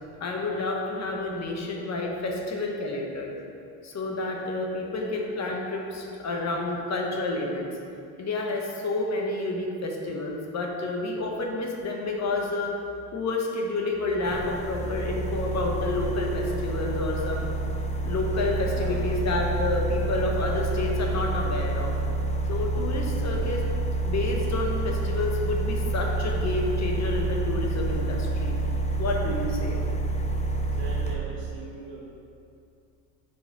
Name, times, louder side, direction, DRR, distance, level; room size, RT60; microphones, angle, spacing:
voice 1, 0.2-3.3 3.8-7.7 8.2-12.7 13.1-17.5 18.0-21.9 22.5-23.6 24.0-28.5 29.0-29.8, left 2 dB, 40° left, 0 dB, 1.1 m, -29 dB
sound 1, 14.2-31.1, right 2 dB, 15° left, 0.7 m, -28 dB
voice 2, 18.5-19.1 30.6-32.1, right 3 dB, 30° right, -5 dB, 1.0 m, -41 dB
5.3 x 4.8 x 5.1 m, 2.5 s
supercardioid pair, 90°, 41 cm